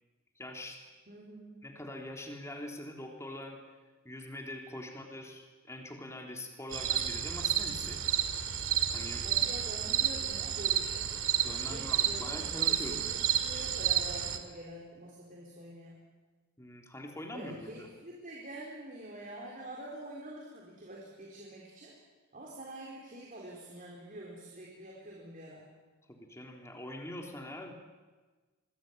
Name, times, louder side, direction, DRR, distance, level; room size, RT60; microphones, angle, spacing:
voice 1, 0.4-0.8 1.6-3.6 4.0-8.0 8.9-9.3 11.4-13.0 16.6-17.9 26.1-27.7, left 1 dB, 15° left, 2 dB, 3.7 m, -43 dB
voice 2, 1.1-1.6 9.2-11.1 11.7-16.0 17.3-21.9 22.3-25.7, right 1 dB, 40° right, -2 dB, 4.4 m, -46 dB
sound 1, 6.7-14.4, right 10 dB, 70° right, 2.2 m, -31 dB
25.0 x 21.0 x 9.5 m, 1.3 s
head